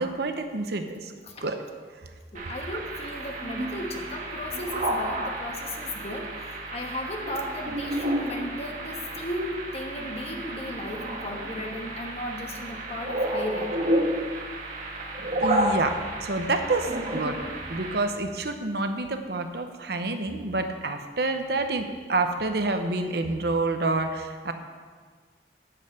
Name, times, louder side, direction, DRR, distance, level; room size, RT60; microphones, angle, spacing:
voice 1, 0.0-1.1 1.4-1.6 15.4-17.4 17.7-24.5, right 3 dB, 60° right, 7 dB, 0.9 m, -28 dB
voice 2, 2.3-13.7, left 1 dB, 35° left, 2 dB, 1.3 m, -35 dB
sound 1, 2.3-18.0, right 1 dB, 45° right, 1.4 m, -31 dB
10.5 x 5.5 x 8.0 m, 1.6 s
head